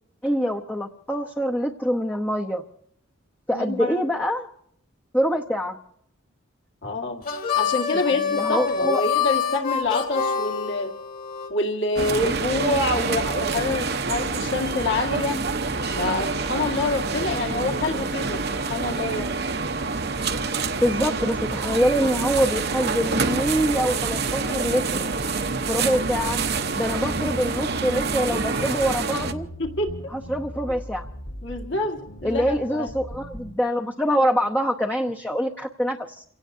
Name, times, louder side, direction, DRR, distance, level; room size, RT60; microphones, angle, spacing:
voice 1, 0.2-2.6 3.5-4.5 5.1-5.8 8.1-9.0 20.8-25.1 25.7-26.4 26.7-29.5 30.1-31.0 32.2-36.2, equal, 10° left, 1 dB, 0.8 m, -25 dB
voice 2, 3.5-4.0 6.8-7.2 7.6-10.9 11.5-15.4 15.9-19.4 29.6-30.1 30.7-30.8 31.4-32.9, left 2 dB, 60° left, 3 dB, 1.9 m, -27 dB
Harmonica, 7.2-11.5, left 7 dB, 45° left, 2.0 m, -26 dB
sound 1, 11.9-29.3, right 4 dB, 50° right, 1.0 m, -27 dB
sound 2, 26.2-33.6, equal, 75° left, 2.9 m, -39 dB
29.0 x 17.5 x 2.7 m, 0.69 s
head